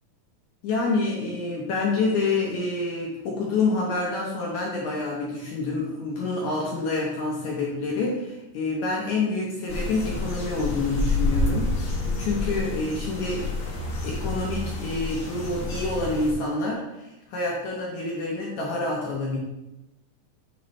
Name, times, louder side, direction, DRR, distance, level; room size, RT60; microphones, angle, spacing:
voice 1, 0.6-13.5 14.0-19.4, left 3 dB, 70° left, -3 dB, 1.8 m, -27 dB
sound 1, 9.7-16.3, left 2 dB, 85° left, 1.1 m, -28 dB
9.1 x 5.6 x 3.2 m, 0.97 s
omnidirectional pair, 4.7 m